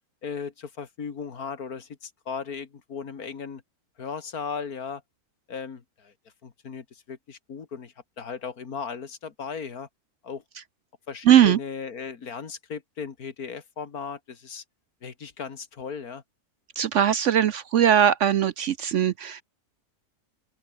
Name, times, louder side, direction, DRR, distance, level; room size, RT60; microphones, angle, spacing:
voice 1, 0.2-3.6 4.0-5.0 5.5-6.1 6.4-9.9 10.2-10.4 11.1-14.6 15.0-16.2, left 6 dB, 70° left, 2.3 m, -36 dB
voice 2, 11.2-11.6 16.8-19.4, right 9 dB, 65° right, 0.8 m, -20 dB
open air
omnidirectional pair, 1.6 m